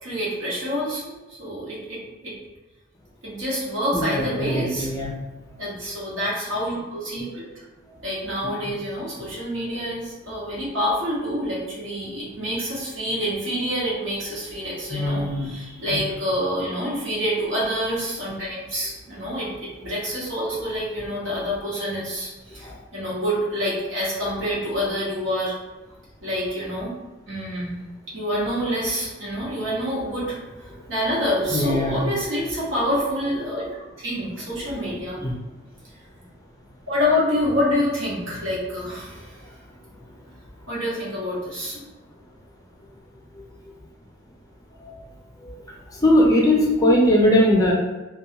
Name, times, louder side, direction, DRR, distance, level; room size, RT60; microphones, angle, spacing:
voice 1, 0.0-2.3 3.2-4.9 5.6-7.4 8.0-25.5 26.2-26.9 27.3-27.8 28.1-30.4 30.9-33.8 34.0-35.2 36.9-39.4 40.7-41.8, equal, 70° right, -7 dB, 1.1 m, -27 dB
voice 2, 3.9-5.1 14.9-15.5 15.9-16.0 22.6-22.7 31.5-32.1 35.2-35.3 44.8-44.9 45.4-45.5 45.9-47.7, left 1 dB, 15° left, -2 dB, 0.4 m, -20 dB
2.7 x 2.3 x 2.7 m, 1.1 s
head